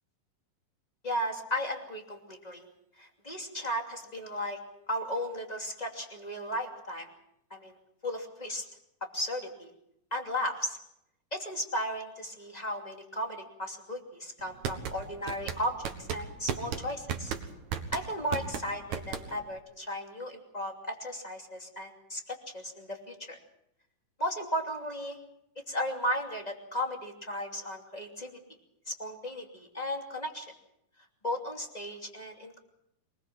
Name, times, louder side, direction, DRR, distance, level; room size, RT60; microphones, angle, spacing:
voice 1, 1.0-2.7 3.0-4.6 4.9-7.1 7.5-7.8 8.0-8.6 9.0-9.7 10.1-10.8 11.3-17.3 17.9-23.4 24.2-25.2 25.7-28.4 28.9-30.5 31.2-32.6, equal, 15° left, 2 dB, 2.3 m, -35 dB
sound 1, 14.4-19.6, right 7 dB, 65° right, 2.6 m, -35 dB
23.5 x 21.0 x 6.1 m, 0.79 s
omnidirectional pair, 3.9 m